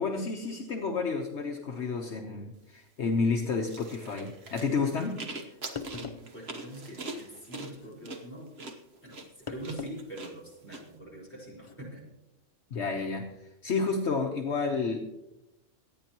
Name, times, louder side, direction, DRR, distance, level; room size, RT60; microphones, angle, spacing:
voice 1, 0.0-5.2 12.7-13.3 13.6-15.0, left 4 dB, 65° left, 1 dB, 1.3 m, -30 dB
sound 1, 3.7-10.8, right 3 dB, 55° right, 1.5 m, -42 dB
sound 2, 5.8-6.3 7.7-8.0 9.5-10.0 10.4-10.5 11.6-11.7, left 6 dB, 35° left, 0.6 m, -41 dB
voice 2, 5.9-8.7 9.0-12.0, right 1 dB, 10° left, -5 dB, 4.9 m, -44 dB
24.5 x 9.2 x 3.0 m, 0.92 s
omnidirectional pair, 1.3 m